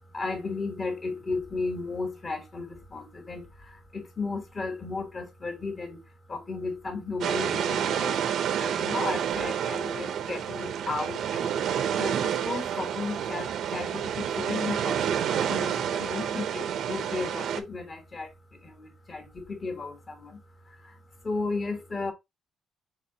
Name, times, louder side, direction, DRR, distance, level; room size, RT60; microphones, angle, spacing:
voice 1, 0.1-8.2 8.6-11.6 12.0-20.4 20.7-22.1, left 3 dB, 35° left, 1.3 m, -35 dB
sound 1, 7.2-17.6, right 9 dB, 75° right, 0.6 m, -29 dB
4.7 x 3.8 x 2.8 m
cardioid pair, 90°, 0 cm